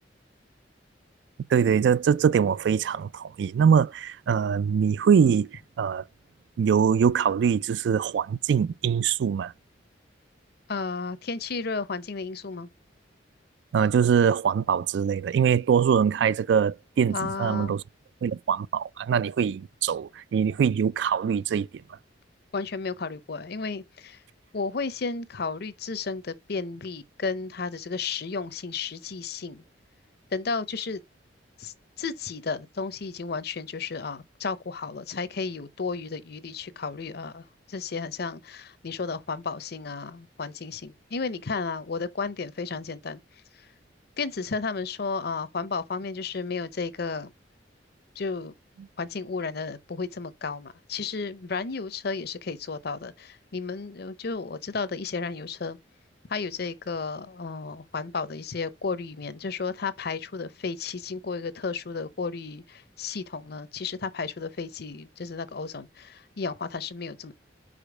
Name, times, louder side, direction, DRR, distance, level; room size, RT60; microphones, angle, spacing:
voice 1, 1.5-6.0 6.6-9.5 13.7-17.8 18.2-21.7, right 7 dB, 70° right, 0.3 m, -23 dB
voice 2, 10.7-12.7 17.1-17.7 22.5-24.2 24.5-29.6 30.3-31.0 31.6-43.2 44.2-47.3 48.2-48.5 49.0-55.8 56.3-67.3, left 4 dB, 60° left, 0.7 m, -33 dB
5.1 x 4.2 x 6.0 m
head